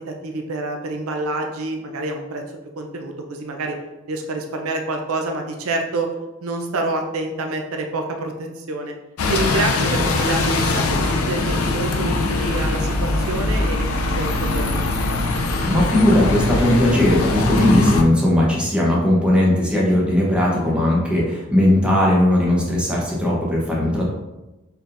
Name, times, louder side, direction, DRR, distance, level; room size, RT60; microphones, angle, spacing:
voice 1, 0.0-2.4 2.8-3.8 4.1-6.1 6.4-8.9 9.3-13.9 14.2-14.8, right 2 dB, 85° right, 3 dB, 0.6 m, -27 dB
Bus, 9.2-18.0, left 2 dB, 85° left, 0.4 m, -21 dB
voice 2, 15.6-24.0, left 1 dB, 5° right, -5 dB, 0.8 m, -18 dB
4.4 x 3.6 x 2.5 m, 1.0 s
head